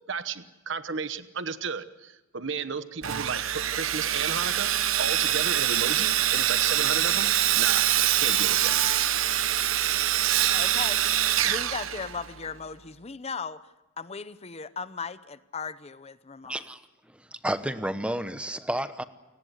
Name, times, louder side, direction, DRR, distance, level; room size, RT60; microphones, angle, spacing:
voice 1, 0.1-7.9 8.2-8.8, right 5 dB, 65° right, 12 dB, 1.1 m, -34 dB
Sawing, 3.0-12.5, right 12 dB, 85° right, 0.9 m, -24 dB
voice 2, 10.5-11.0 11.4-13.6 14.0-16.6, left 5 dB, 30° left, 15 dB, 0.8 m, -37 dB
voice 3, 16.5-16.8 17.1-19.0, right 1 dB, 5° right, 11 dB, 1.0 m, -31 dB
29.0 x 19.0 x 8.1 m, 1.1 s
head